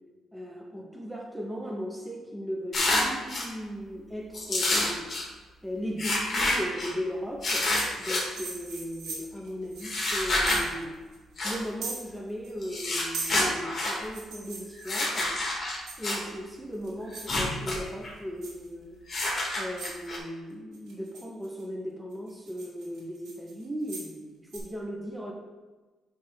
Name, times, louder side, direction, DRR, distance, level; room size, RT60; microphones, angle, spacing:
voice 1, 0.3-5.1 5.6-7.7 8.0-11.1 11.4-15.4 16.0-19.0 19.6-25.3, equal, 5° right, 1 dB, 0.8 m, -37 dB
sound 1, 2.7-3.5 4.3-5.2 6.0-6.9 7.4-8.2 9.8-10.6 11.4-11.6 12.6-14.0 14.8-16.2 17.1-17.8 18.0-18.1 19.1-20.2, left 2 dB, 35° left, 2.1 m, -28 dB
sound 2, 7.7-10.8 11.1-11.2 11.5-12.5 12.8-15.3 15.9-16.3 16.7-17.3 17.7-18.1 18.4-18.7 19.3-19.4 19.8-20.1 20.7-21.6 22.1-24.1 24.5-24.6, right 4 dB, 80° right, 2.0 m, -39 dB
7.3 x 3.4 x 5.8 m, 1.3 s
cardioid pair, 90°, 0 cm